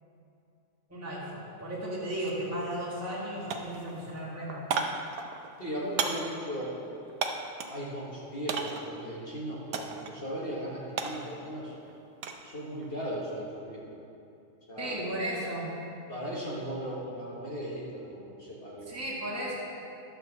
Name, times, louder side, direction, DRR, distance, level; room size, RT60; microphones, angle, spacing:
voice 1, 0.9-4.7 14.8-15.7 18.9-19.5, right 1 dB, 10° right, -7 dB, 1.7 m, -35 dB
sound 1, 2.2-2.4 2.7-3.2 3.5-7.8 8.5-9.0 9.7-10.2 10.5-12.5 12.8-13.2, right 5 dB, 85° right, 1.2 m, -35 dB
voice 2, 5.6-6.7 7.7-11.7 12.4-13.8 14.7-15.0 16.1-18.9, equal, 40° left, -6 dB, 1.6 m, -37 dB
11.5 x 4.5 x 7.0 m, 2.7 s
omnidirectional pair, 1.5 m